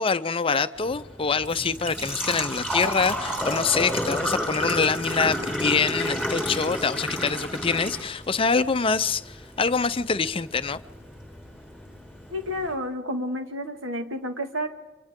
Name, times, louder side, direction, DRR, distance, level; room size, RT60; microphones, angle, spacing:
voice 1, 0.0-10.8, left 5 dB, 25° left, 0.6 m, -25 dB
Engine / Trickle dribble / Fill (with liquid), 0.7-12.7, equal, 5° right, 6.3 m, -32 dB
voice 2, 12.3-14.7, equal, 75° right, 2.0 m, -30 dB
28.0 x 26.5 x 3.7 m
head